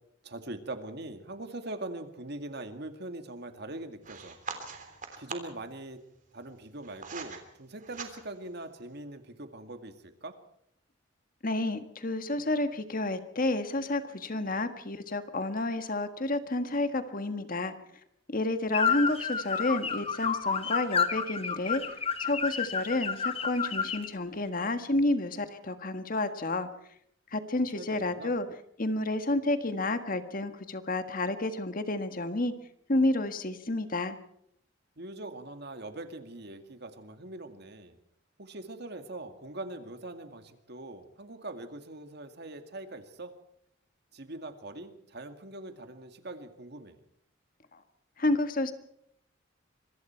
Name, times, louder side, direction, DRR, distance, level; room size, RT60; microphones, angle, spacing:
voice 1, 0.2-4.4 5.2-6.0 6.3-10.4 27.7-28.4 35.0-38.0 38.4-43.3 44.1-47.0, right 2 dB, 60° right, 8 dB, 2.2 m, -42 dB
sound 1, 4.0-5.6 6.4-7.4 7.8-8.5, right 5 dB, 45° right, 3.3 m, -42 dB
voice 2, 11.4-17.7 18.3-21.8 22.2-26.7 27.3-28.4 28.8-32.5 32.9-34.1 48.2-48.7, left 2 dB, 45° left, 9 dB, 1.6 m, -30 dB
sound 2, 18.7-24.1, left 6 dB, 30° left, 1.4 m, -30 dB
26.0 x 23.0 x 4.6 m, 0.73 s
head